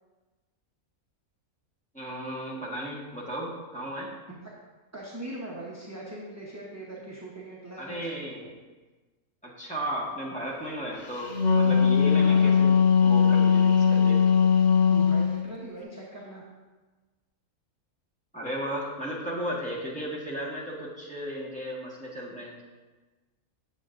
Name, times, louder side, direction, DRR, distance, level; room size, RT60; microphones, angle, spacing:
voice 1, 1.9-4.1 7.8-8.5 9.4-14.2 18.3-22.6, equal, 5° left, -6 dB, 1.4 m, -35 dB
voice 2, 4.9-8.2 11.7-11.9 12.2-12.6 14.9-16.4, right 1 dB, 15° right, -5 dB, 0.7 m, -40 dB
Wind instrument woodwind instrument, 11.1-15.3, left 6 dB, 55° left, 0.5 m, -20 dB
8.4 x 7.6 x 2.5 m, 1.2 s
omnidirectional pair, 1.5 m